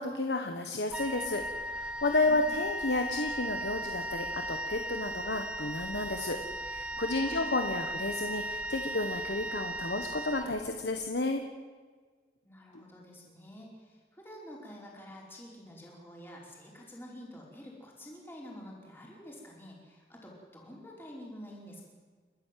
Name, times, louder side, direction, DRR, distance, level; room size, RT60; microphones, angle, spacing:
voice 1, 0.0-1.4 1.7-11.4 12.7-12.8, left 2 dB, 75° left, 5 dB, 1.4 m, -32 dB
Wind instrument woodwind instrument, 0.9-11.0, right 1 dB, 5° right, 0.9 m, -37 dB
voice 2, 12.4-21.8, equal, 15° left, -2 dB, 5.0 m, -48 dB
30.0 x 13.0 x 7.7 m, 1.5 s
head